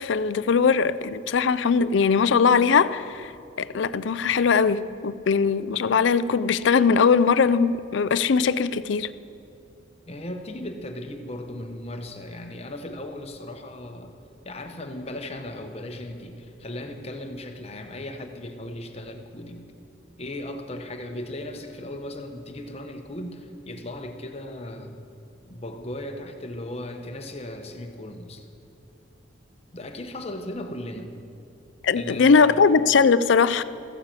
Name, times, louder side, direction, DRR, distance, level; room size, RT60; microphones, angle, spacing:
voice 1, 0.0-3.3 3.6-9.1 31.8-33.6, left 5 dB, 70° left, 0.4 m, -20 dB
voice 2, 10.1-14.1 14.4-19.7 20.2-25.0 25.5-28.5 29.7-31.2 31.9-32.7, left 1 dB, 30° left, 0.9 m, -37 dB
14.5 x 9.6 x 7.5 m
head